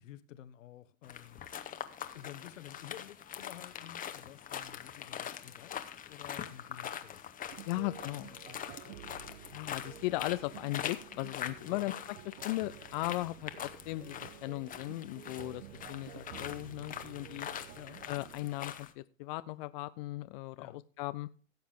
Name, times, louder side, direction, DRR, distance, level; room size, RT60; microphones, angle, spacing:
voice 1, 0.0-1.4 2.1-7.3 7.6-9.3 11.7-12.0 17.7-18.0 20.6-20.8, left 12 dB, 65° left, 1.2 m, -52 dB
sound 1, 1.0-18.9, left 9 dB, 20° left, 1.0 m, -44 dB
sound 2, 7.5-18.5, right 14 dB, 70° right, 0.6 m, -52 dB
voice 2, 7.7-8.3 9.5-17.5 18.1-21.3, left 19 dB, 40° left, 0.4 m, -37 dB
16.0 x 7.3 x 3.6 m
hypercardioid pair, 115°, 41 cm